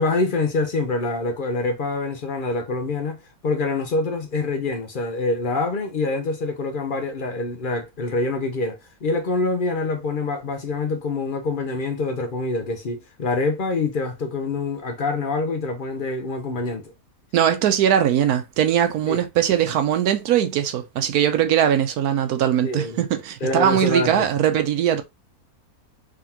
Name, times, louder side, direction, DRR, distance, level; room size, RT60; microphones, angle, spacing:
voice 1, 0.0-16.9 19.1-19.2 22.6-23.0 23.4-24.3, left 3 dB, 45° left, 0.7 m, -25 dB
voice 2, 17.3-25.0, right 10 dB, 75° right, 1.1 m, -20 dB
3.7 x 3.5 x 2.8 m
omnidirectional pair, 1.7 m